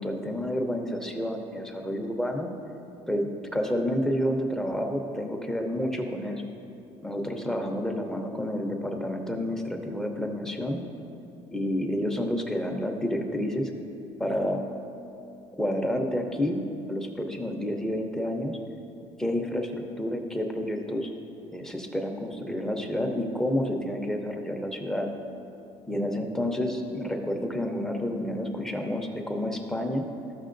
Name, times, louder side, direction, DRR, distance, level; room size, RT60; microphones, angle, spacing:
voice 1, 0.0-2.5 3.1-6.4 7.0-10.8 11.5-13.7 14.2-14.6 15.6-16.6 16.9-18.6 19.2-21.1 21.5-25.1 25.9-30.1, equal, 5° left, 3 dB, 0.8 m, -29 dB
14.0 x 6.1 x 2.6 m, 2.8 s
cardioid pair, 115°, 11 cm